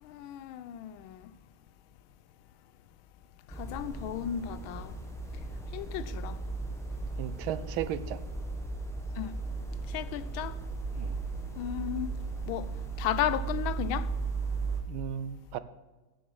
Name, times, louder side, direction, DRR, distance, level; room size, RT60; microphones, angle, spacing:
voice 1, 0.0-1.3 3.6-4.9 5.7-6.4 9.2-9.3 9.9-10.5 11.6-12.1 12.5-12.7 13.0-14.1, left 11 dB, 85° left, 1.4 m, -34 dB
sound 1, 3.5-14.8, right 4 dB, ahead, 1.0 m, -36 dB
voice 2, 7.2-8.2 11.0-11.1 14.9-15.6, right 10 dB, 85° right, 1.4 m, -35 dB
9.1 x 7.2 x 6.2 m
omnidirectional pair, 2.2 m